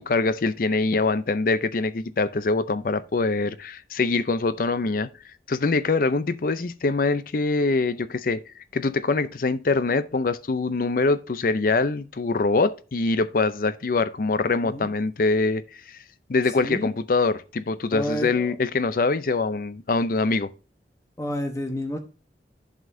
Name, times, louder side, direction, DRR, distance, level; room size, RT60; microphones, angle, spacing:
voice 1, 0.0-5.1 5.5-8.4 8.7-15.6 15.9-16.0 16.3-20.5, left 3 dB, 50° left, 0.5 m, -24 dB
voice 2, 16.6-16.9 17.9-18.5 21.2-22.0, equal, 15° left, 1.0 m, -30 dB
11.0 x 5.2 x 2.6 m
head